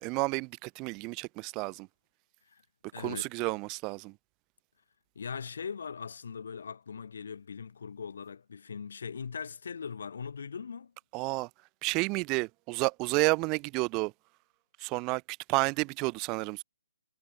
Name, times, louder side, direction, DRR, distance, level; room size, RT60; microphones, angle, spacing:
voice 1, 0.0-1.9 3.0-4.1 11.1-11.5 11.8-14.1 14.8-16.6, right 27 dB, 25° right, 0.8 m, -31 dB
voice 2, 2.9-3.3 5.2-10.9, left 6 dB, 65° left, 4.1 m, -40 dB
figure-of-eight pair, 140°, 0 cm